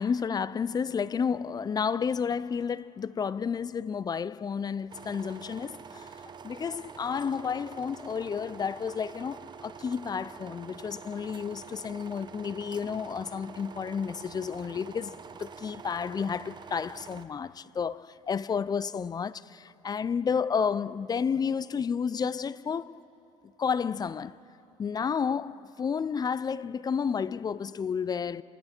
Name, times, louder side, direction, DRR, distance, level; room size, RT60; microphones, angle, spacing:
voice 1, 0.0-6.1 6.4-23.0 23.6-24.3 24.8-28.4, left 6 dB, 30° left, 0.5 m, -31 dB
sound 1, 4.9-17.2, right 6 dB, 35° right, 1.0 m, -46 dB
27.5 x 25.5 x 4.4 m
supercardioid pair, 80°, 13 cm